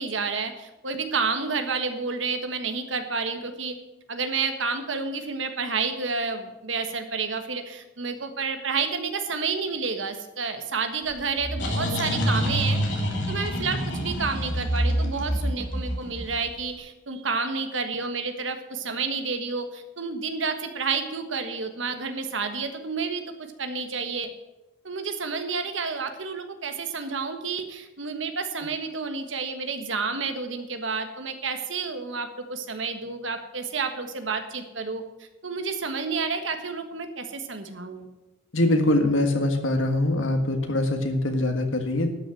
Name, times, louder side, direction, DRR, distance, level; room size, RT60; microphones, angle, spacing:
voice 1, 0.0-3.8 4.1-12.8 13.3-24.3 24.8-35.0 35.4-38.1, right 4 dB, 75° right, 7 dB, 1.4 m, -30 dB
sound 1, 11.1-16.6, equal, 70° left, 3.0 m, -27 dB
voice 2, 38.5-42.1, left 1 dB, 85° left, 5 dB, 1.7 m, -23 dB
12.0 x 6.5 x 7.7 m, 0.99 s
head